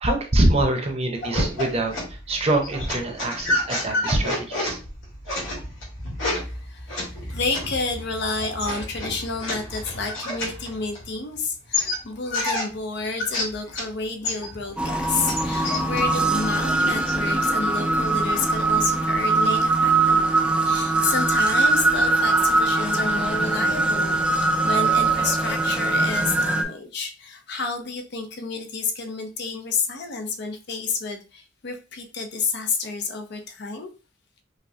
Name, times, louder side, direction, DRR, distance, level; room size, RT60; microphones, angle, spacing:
voice 1, 0.0-1.9 2.3-4.8, right 1 dB, 30° right, 3 dB, 0.7 m, -23 dB
sound 1, 1.2-11.3 11.7-13.9 14.2-17.2, left 2 dB, 85° left, 1.8 m, -30 dB
voice 2, 6.6-7.0 7.3-33.9, left 4 dB, 55° left, 5 dB, 0.6 m, -30 dB
sound 2, 14.8-26.6, right 3 dB, 5° right, 0.3 m, -22 dB
4.8 x 2.2 x 2.7 m, 0.33 s
head